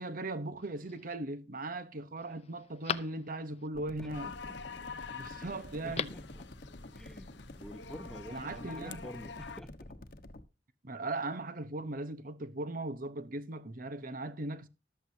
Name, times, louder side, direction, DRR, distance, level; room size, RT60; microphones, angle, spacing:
voice 1, 0.0-4.3 5.1-6.1 8.3-9.0 10.8-14.7, right 2 dB, 50° right, 1.0 m, -38 dB
Telephone, 0.6-1.2 1.7-1.8 2.2-3.7 5.7-6.3 6.6-6.7, left 6 dB, 35° left, 0.6 m, -40 dB
sound 1, 3.7-10.4, left 1 dB, 55° left, 1.2 m, -49 dB
voice 2, 4.0-4.5 5.4-6.4 6.9-9.9, equal, 5° left, 1.1 m, -49 dB
sound 2, 4.1-9.6, left 5 dB, 75° left, 0.8 m, -47 dB
14.5 x 12.5 x 2.8 m
head